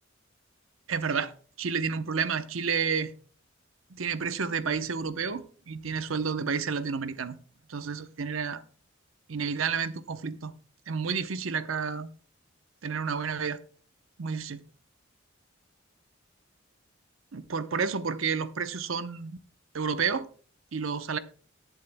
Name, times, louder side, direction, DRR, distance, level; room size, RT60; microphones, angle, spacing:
voice 1, 0.9-1.3 1.6-3.1 3.9-7.4 7.7-8.6 9.3-10.5 10.9-12.1 12.8-13.6 14.2-14.6 17.3-19.4 19.7-20.3 20.7-21.2, right 5 dB, 80° right, 0.8 m, -30 dB
20.5 x 7.3 x 2.2 m
head